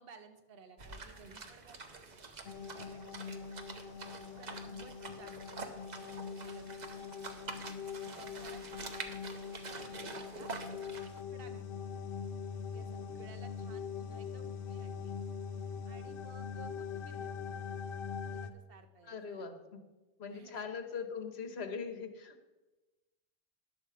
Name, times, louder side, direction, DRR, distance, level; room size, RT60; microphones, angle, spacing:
voice 1, 0.0-3.5 4.2-5.8 6.3-6.9 7.4-7.8 8.1-10.5 11.3-11.9 12.6-15.2 15.8-17.8 18.3-19.5 20.3-20.7, right 5 dB, 65° right, 7 dB, 1.1 m, -57 dB
sound 1, 0.8-11.2, right 4 dB, 45° right, 0.9 m, -47 dB
sound 2, 2.4-18.5, left 6 dB, 65° left, 0.7 m, -43 dB
voice 2, 19.0-19.8 20.2-22.5, left 5 dB, 85° left, 6 dB, 1.2 m, -41 dB
10.5 x 6.7 x 4.8 m, 1.1 s
omnidirectional pair, 1.0 m